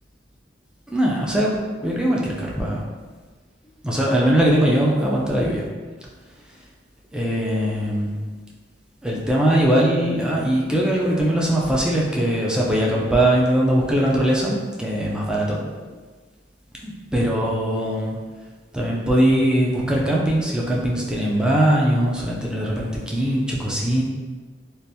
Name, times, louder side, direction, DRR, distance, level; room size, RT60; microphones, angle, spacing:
voice 1, 0.9-2.9 3.8-5.7 6.5-6.6 7.1-8.2 9.0-15.6 16.8-18.2 18.7-24.0, right 1 dB, 5° right, -4 dB, 0.4 m, -21 dB
3.3 x 2.5 x 2.8 m, 1.4 s
head